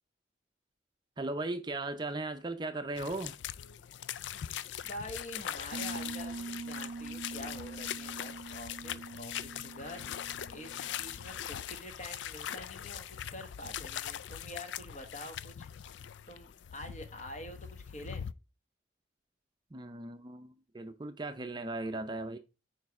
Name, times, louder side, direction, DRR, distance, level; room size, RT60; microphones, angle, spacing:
voice 1, 1.2-3.4 19.7-22.4, right 2 dB, 25° right, 0.5 m, -37 dB
sound 1, 3.0-18.3, left 10 dB, 90° left, 0.4 m, -41 dB
voice 2, 4.8-10.1 10.5-15.7 16.3-18.3, left 1 dB, 40° left, 1.3 m, -46 dB
sound 2, 5.7-11.3, right 4 dB, 75° right, 0.5 m, -44 dB
9.0 x 3.3 x 4.7 m
head